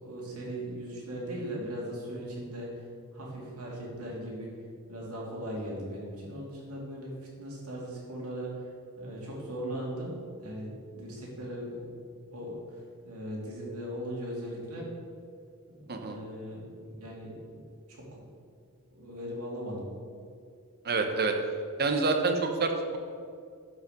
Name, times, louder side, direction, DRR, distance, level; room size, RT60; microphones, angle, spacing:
voice 1, 0.0-2.9 3.1-4.5 4.9-8.7 9.0-11.9 12.3-12.8 13.0-14.9 15.7-17.6 17.9-18.2 18.9-19.9, equal, 80° right, -3 dB, 2.7 m, -39 dB
voice 2, 20.8-21.3 21.8-23.0, right 3 dB, 45° right, 5 dB, 1.0 m, -27 dB
11.5 x 5.6 x 5.2 m, 2.2 s
head